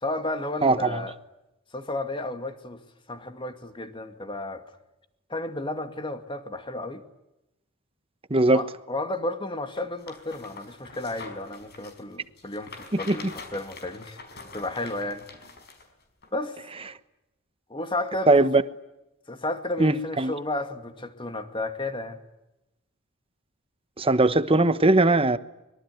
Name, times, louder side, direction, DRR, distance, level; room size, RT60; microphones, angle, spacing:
voice 1, 0.0-1.2 1.7-2.8 3.1-4.6 5.3-7.0 8.5-15.2 16.3-16.6 17.7-18.5 19.3-22.2, left 2 dB, 25° left, 2.3 m, -33 dB
voice 2, 0.6-1.0 8.3-8.6 12.9-13.3 18.3-18.6 19.8-20.3 24.0-25.4, right 2 dB, 25° right, 1.1 m, -20 dB
sound 1, 9.8-15.9 16.2-16.3, left 4 dB, 50° left, 5.0 m, -45 dB
24.5 x 23.0 x 9.4 m
head